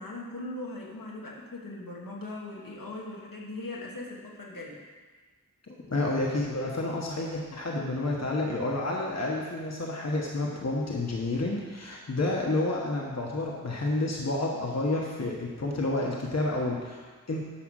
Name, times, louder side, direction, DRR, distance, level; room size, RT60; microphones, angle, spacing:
voice 1, 0.0-4.8, left 2 dB, 80° left, -3 dB, 1.8 m, -39 dB
voice 2, 5.7-17.4, left 2 dB, 50° left, -2 dB, 1.3 m, -30 dB
10.0 x 4.9 x 6.4 m, 1.4 s
wide cardioid pair, 70°, 33 cm